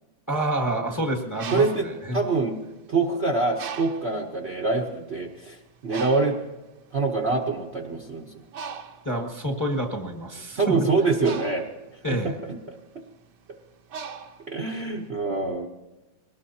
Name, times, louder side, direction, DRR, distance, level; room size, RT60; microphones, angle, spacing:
voice 1, 0.3-2.2 9.0-10.7 12.0-12.4, right 1 dB, 10° left, 2 dB, 1.1 m, -28 dB
Bird, 1.2-3.0 3.6-4.2 4.9-5.1 5.3-15.0, right 6 dB, 65° right, 1.4 m, -40 dB
voice 2, 1.5-1.9 2.1-2.6 2.9-6.4 6.9-8.3 10.6-11.7 12.1-12.6 14.5-15.7, right 3 dB, 45° right, 1 dB, 1.0 m, -25 dB
22.0 x 18.5 x 2.8 m, 1.1 s
omnidirectional pair, 2.1 m